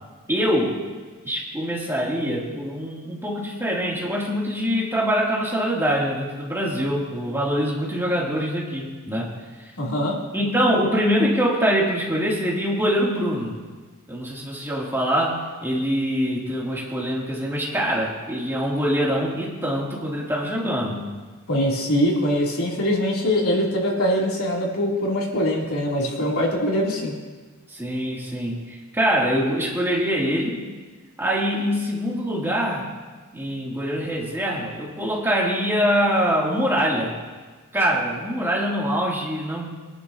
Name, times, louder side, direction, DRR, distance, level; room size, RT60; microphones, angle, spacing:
voice 1, 0.3-0.8 1.2-9.3 9.6-9.7 10.3-13.6 14.1-21.0 27.7-30.6 31.2-32.9 33.3-37.2 37.7-39.7, equal, 10° right, -5 dB, 2.7 m, -24 dB
voice 2, 9.8-10.2 21.5-27.1, equal, 85° left, -3 dB, 3.1 m, -23 dB
23.0 x 11.0 x 2.8 m, 1.3 s
head